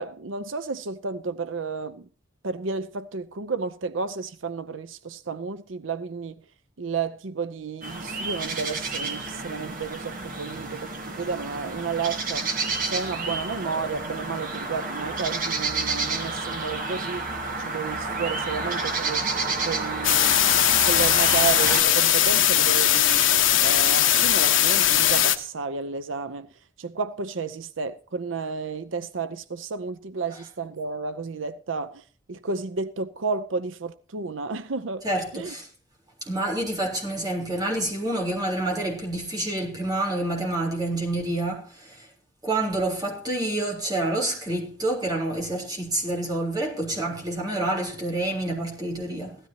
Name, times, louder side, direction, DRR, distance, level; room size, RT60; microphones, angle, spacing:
voice 1, 0.0-2.1 2.4-6.4 6.8-12.5 12.8-19.2 19.6-26.5 26.8-35.0 35.3-35.5, right 4 dB, 85° right, 0.7 m, -32 dB
sound 1, 7.8-21.8, right 3 dB, 45° right, 1.9 m, -30 dB
sound 2, 20.0-25.4, left 11 dB, 90° left, 1.3 m, -19 dB
voice 2, 35.0-35.7 36.2-42.1 42.4-49.4, right 1 dB, 20° right, 3.7 m, -28 dB
16.5 x 13.0 x 2.8 m
head